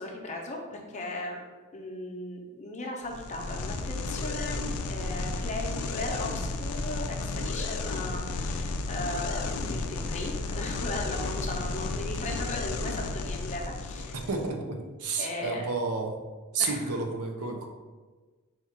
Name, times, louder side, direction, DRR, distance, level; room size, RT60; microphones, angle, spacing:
voice 1, 0.0-1.4 1.7-4.6 4.9-14.2 15.2-15.7 16.6-16.9, left 2 dB, 35° left, 0 dB, 0.7 m, -37 dB
sound 1, 3.1-14.5, left 3 dB, 80° left, 0.4 m, -33 dB
voice 2, 14.1-16.2 16.5-17.7, right 4 dB, 80° right, 3 dB, 0.6 m, -31 dB
4.3 x 2.4 x 4.3 m, 1.3 s
head